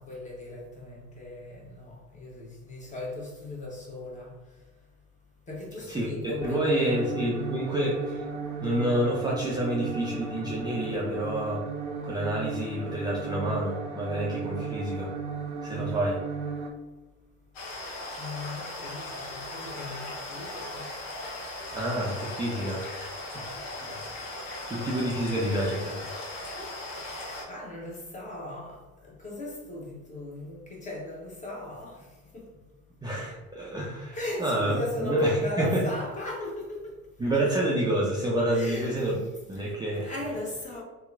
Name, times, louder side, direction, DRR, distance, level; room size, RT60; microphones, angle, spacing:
voice 1, 0.0-4.3 5.5-7.1 18.2-19.0 19.3-20.0 20.3-20.8 26.9-28.8 29.2-32.0 34.1-36.8 38.5-39.0 39.6-40.8, left 1 dB, 20° left, 1.0 m, -37 dB
voice 2, 5.9-8.2 8.6-11.7 12.0-15.1 15.6-16.2 21.7-23.2 23.8-24.0 24.7-26.0 33.0-35.8 37.2-39.2 39.5-40.1, right 1 dB, 10° right, 0.4 m, -28 dB
sound 1, 6.4-16.7, right 4 dB, 70° right, 0.5 m, -35 dB
sound 2, 17.5-27.4, left 2 dB, 65° left, 0.8 m, -38 dB
2.8 x 2.1 x 2.4 m
hypercardioid pair, 60°, 35 cm